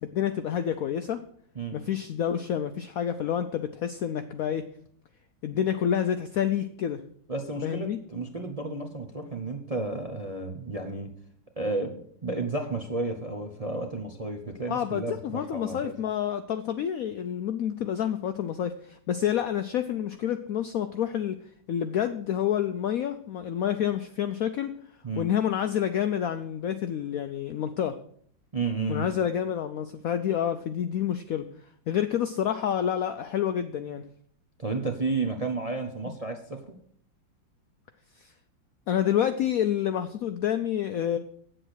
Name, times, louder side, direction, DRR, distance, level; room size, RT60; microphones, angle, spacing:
voice 1, 0.0-1.2 1.7-4.7 5.4-7.0 7.6-8.0 14.7-21.4 21.7-24.7 25.2-28.0 28.9-31.5 31.9-34.0 36.0-36.1 38.2-38.3 38.9-41.2, left 9 dB, 75° left, 9 dB, 0.8 m, -28 dB
voice 2, 7.3-11.1 11.6-15.9 25.0-25.3 28.5-29.1 34.6-36.8, right 3 dB, 35° right, 3 dB, 0.6 m, -32 dB
8.6 x 7.9 x 6.3 m, 0.62 s
omnidirectional pair, 2.0 m